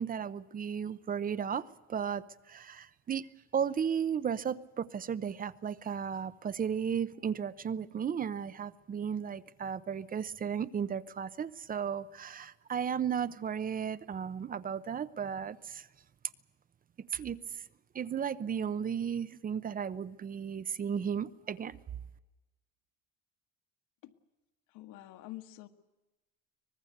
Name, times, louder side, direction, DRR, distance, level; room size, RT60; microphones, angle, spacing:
voice 1, 0.0-3.3 3.5-15.9 17.1-17.4 17.9-21.8, right 7 dB, 30° right, 16 dB, 0.8 m, -34 dB
voice 2, 24.7-25.7, left 16 dB, 85° left, 6 dB, 1.6 m, -47 dB
24.5 x 20.0 x 8.0 m, 1.1 s
cardioid pair, 140°, 30 cm